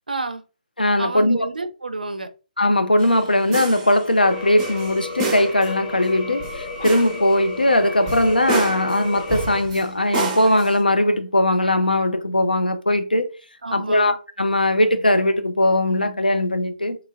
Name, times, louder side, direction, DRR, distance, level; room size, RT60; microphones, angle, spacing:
voice 1, 0.1-0.4 1.0-2.3 13.6-14.2, right 2 dB, 75° right, 0.4 m, -29 dB
voice 2, 0.8-1.5 2.6-13.4 13.7-17.0, left 1 dB, 80° left, 0.5 m, -19 dB
sound 1, 3.0-4.2 4.6-5.7 6.4-7.2 7.6-7.7 8.1-9.9 10.1-10.8, right 4 dB, 20° right, 0.6 m, -29 dB
sound 2, 4.2-9.6, left 3 dB, 50° left, 0.8 m, -33 dB
sound 3, 5.4-6.0 6.8-7.8 8.0-8.3 9.2-9.3 9.8-9.9 10.1-10.2 10.4-11.1 11.6-11.9 12.2-12.3, left 1 dB, 20° left, 1.0 m, -43 dB
2.9 x 2.6 x 2.2 m
figure-of-eight pair, 135°, 5 cm